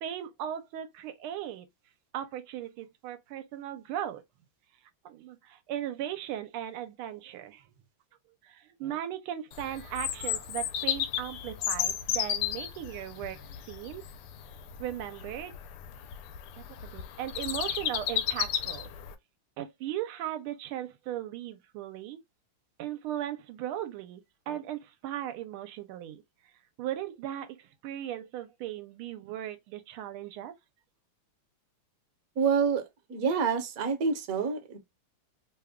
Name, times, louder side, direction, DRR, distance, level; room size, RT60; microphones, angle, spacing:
voice 1, 0.0-1.7 2.1-4.2 5.0-7.7 8.4-14.0 14.8-15.5 16.6-18.9 19.6-22.2 22.8-26.2 26.8-30.5, right 11 dB, 80° right, 1.4 m, -37 dB
Bird vocalization bird call bird song, 9.5-19.1, left 10 dB, 85° left, 1.5 m, -34 dB
voice 2, 32.4-32.8 33.1-34.8, right 6 dB, 55° right, 1.1 m, -27 dB
3.5 x 2.2 x 3.5 m
omnidirectional pair, 2.4 m